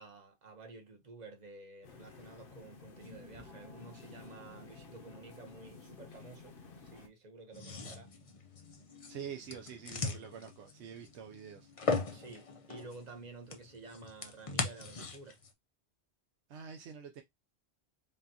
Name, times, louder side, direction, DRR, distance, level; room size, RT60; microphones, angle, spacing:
voice 1, 0.0-8.1 12.1-15.4, right 3 dB, 40° right, 1.0 m, -51 dB
sound 1, 1.8-7.1, left 4 dB, 55° left, 1.0 m, -52 dB
sound 2, 7.5-15.5, left 4 dB, 40° left, 0.6 m, -39 dB
voice 2, 9.1-11.7 16.5-17.2, right 8 dB, 85° right, 0.9 m, -46 dB
5.2 x 2.3 x 2.8 m
omnidirectional pair, 1.1 m